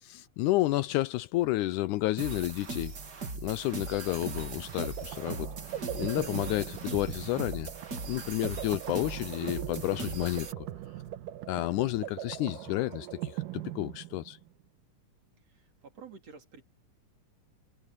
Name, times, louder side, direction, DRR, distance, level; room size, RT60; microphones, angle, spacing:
voice 1, 0.0-2.9 3.4-7.7 8.1-10.7 11.5-14.4, left 17 dB, 80° left, 1.9 m, -31 dB
sound 1, 2.2-10.5, right 3 dB, 35° right, 2.4 m, -39 dB
sound 2, 3.6-14.5, right 13 dB, 80° right, 2.6 m, -41 dB
sound 3, 5.0-11.1, left 2 dB, 40° left, 5.0 m, -61 dB
voice 2, 15.5-16.6, right 5 dB, 50° right, 3.7 m, -50 dB
omnidirectional pair, 3.8 m